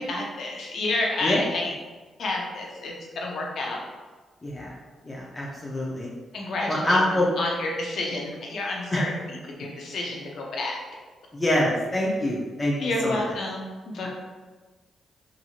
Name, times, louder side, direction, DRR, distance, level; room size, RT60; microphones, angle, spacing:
voice 1, 0.0-1.7 2.2-3.8 6.3-9.1 9.6-10.7 12.8-13.6 13.9-14.1, left 2 dB, 65° left, -1 dB, 0.6 m, -29 dB
voice 2, 4.4-4.7 5.0-6.1 6.7-7.3 8.9-9.0 11.3-13.3, left 1 dB, 25° left, -4 dB, 0.6 m, -25 dB
2.9 x 2.6 x 2.4 m, 1.3 s
supercardioid pair, 55°, 0 cm